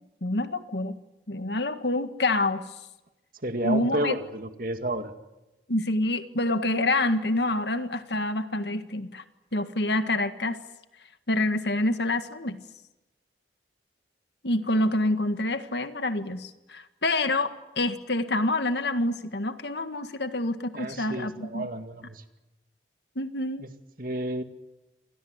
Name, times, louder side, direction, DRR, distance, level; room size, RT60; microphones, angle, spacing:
voice 1, 0.2-1.0 1.3-2.6 3.6-4.2 5.7-9.2 9.5-10.6 11.3-12.6 14.4-21.7 23.1-23.7, left 2 dB, 70° left, 9 dB, 1.8 m, -27 dB
voice 2, 3.4-5.1 20.7-22.2 23.6-23.7 24.0-24.4, right 1 dB, 50° right, 7 dB, 2.3 m, -31 dB
28.5 x 25.0 x 8.2 m, 1.0 s
head